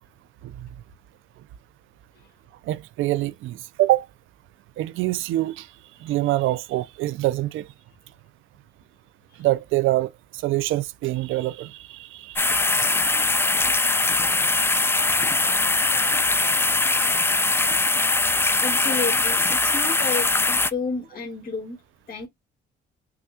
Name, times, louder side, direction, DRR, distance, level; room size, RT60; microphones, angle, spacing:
voice 1, 2.7-4.1 4.8-5.7 6.0-7.7 9.4-12.5 12.7-12.9, right 16 dB, 85° right, 0.4 m, -25 dB
sound 1, 12.4-20.7, left 3 dB, 10° left, 0.4 m, -21 dB
voice 2, 18.6-21.8 22.1-22.3, left 4 dB, 45° left, 1.9 m, -31 dB
6.0 x 2.2 x 2.7 m
cardioid pair, 90°, 20 cm